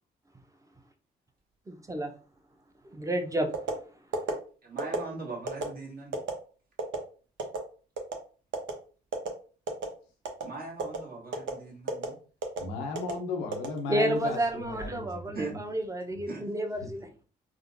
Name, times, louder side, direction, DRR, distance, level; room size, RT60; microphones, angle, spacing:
voice 1, 1.7-2.1 2.9-3.5 13.9-17.2, right 1 dB, 15° right, 0.8 m, -30 dB
sound 1, 3.5-3.8 4.1-4.3 4.8-5.0 5.5-5.6 6.1-6.3 6.8-7.0 7.4-7.6 8.0-8.2 8.5-8.7 9.1-9.3 9.7-9.9 10.3-10.5 10.8-11.0 11.3-11.5 11.9-12.1 12.4-12.6 13.0-13.1 13.5-14.2 14.6-14.9, right 4 dB, 65° right, 0.7 m, -31 dB
voice 2, 4.6-6.2 10.4-12.2 15.3-15.5 16.3-16.5, right 3 dB, 45° right, 1.3 m, -40 dB
voice 3, 12.6-15.6 16.1-16.2 16.8-16.9, left 4 dB, 80° left, 0.6 m, -35 dB
3.5 x 2.0 x 2.6 m
hypercardioid pair, 45°, 21 cm